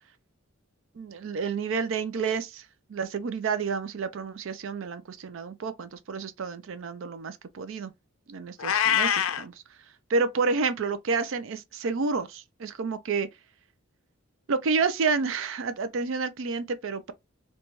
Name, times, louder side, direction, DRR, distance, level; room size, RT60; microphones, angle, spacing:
voice 1, 1.0-7.9 8.3-9.8 10.1-13.3 14.5-17.1, right 4 dB, 65° right, 0.4 m, -30 dB
Meow, 8.6-9.4, left 9 dB, 80° left, 0.4 m, -24 dB
4.0 x 2.2 x 3.0 m
head